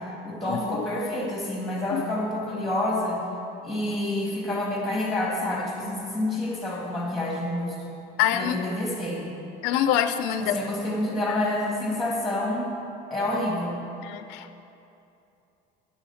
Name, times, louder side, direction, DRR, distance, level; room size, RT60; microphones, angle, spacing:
voice 1, 0.0-3.2 3.6-7.8 8.3-9.3 10.4-12.8 13.1-13.8, left 1 dB, ahead, -3 dB, 2.1 m, -28 dB
voice 2, 8.2-8.7 9.6-10.6 14.0-14.7, left 10 dB, 80° left, 10 dB, 0.5 m, -25 dB
9.9 x 7.2 x 7.1 m, 2.8 s
cardioid pair, 175°, 19 cm